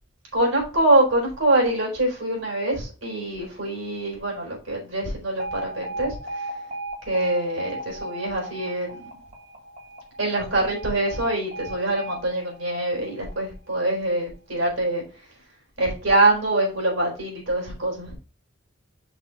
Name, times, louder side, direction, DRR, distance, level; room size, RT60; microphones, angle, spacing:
voice 1, 0.3-6.5 7.1-9.0 10.2-15.0 15.8-18.2, right 2 dB, 80° right, -1 dB, 3.9 m, -24 dB
Alarm, 5.4-13.4, right 1 dB, 45° right, 1.7 m, -37 dB
6.1 x 3.9 x 4.6 m, 0.35 s
head